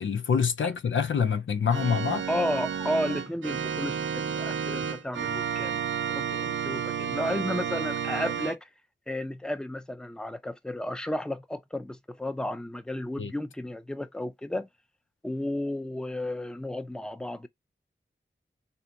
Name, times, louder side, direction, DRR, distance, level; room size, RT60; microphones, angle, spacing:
voice 1, 0.0-2.2 13.2-13.3, left 6 dB, 85° left, 0.5 m, -26 dB
Organ, 1.7-8.5, right 7 dB, 85° right, 0.5 m, -31 dB
voice 2, 2.3-8.7 9.1-14.7 15.2-17.5, left 1 dB, 5° left, 0.5 m, -33 dB
3.3 x 2.8 x 2.5 m
cardioid pair, 45°, 20 cm